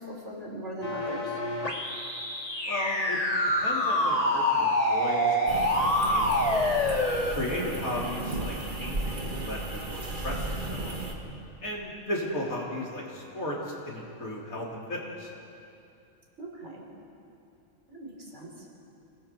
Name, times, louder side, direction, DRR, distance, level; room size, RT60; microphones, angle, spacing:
voice 1, 0.0-1.4 6.7-7.1 16.4-16.9 17.9-18.7, right 1 dB, 55° right, -2 dB, 4.6 m, -40 dB
sound 1, 0.8-7.3, left 1 dB, 30° left, 1.9 m, -26 dB
voice 2, 2.6-3.2 3.6-6.7 7.3-11.0 11.6-15.3, left 1 dB, 85° left, -3 dB, 3.8 m, -35 dB
sound 2, 5.5-11.1, right 2 dB, 35° right, 1.8 m, -34 dB
29.0 x 20.0 x 4.6 m, 2.6 s
omnidirectional pair, 1.4 m